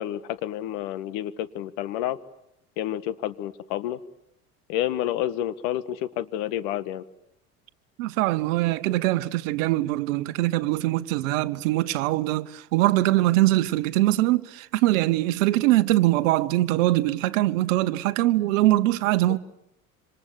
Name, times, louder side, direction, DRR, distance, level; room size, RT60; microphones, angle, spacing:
voice 1, 0.0-2.2 2.8-4.0 4.7-7.0, left 12 dB, 60° left, 1.6 m, -29 dB
voice 2, 8.0-19.4, right 17 dB, 65° right, 1.1 m, -22 dB
27.0 x 25.0 x 8.3 m
figure-of-eight pair, 70°, 43 cm